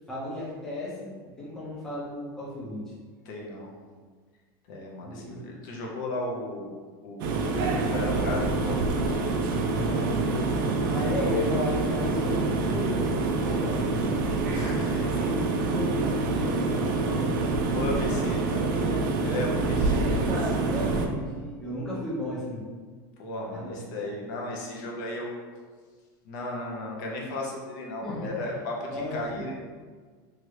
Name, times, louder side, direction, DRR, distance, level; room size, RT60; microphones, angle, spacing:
voice 1, 0.1-2.8 5.0-5.4 9.7-10.4 10.9-14.1 15.0-15.4 15.7-17.4 17.7-19.0 19.8-22.6 23.5-23.7 28.0-28.3 28.9-29.4, left 1 dB, 5° left, -8 dB, 0.6 m, -34 dB
voice 2, 3.3-3.7 4.7-9.2 14.5-15.1 17.7-18.4 19.2-20.2 23.2-25.3 26.2-29.7, left 2 dB, 55° left, -2 dB, 0.6 m, -35 dB
sound 1, 7.2-21.1, right 3 dB, 65° right, 0.4 m, -26 dB
2.9 x 2.4 x 3.1 m, 1.6 s
supercardioid pair, 165°, 12 cm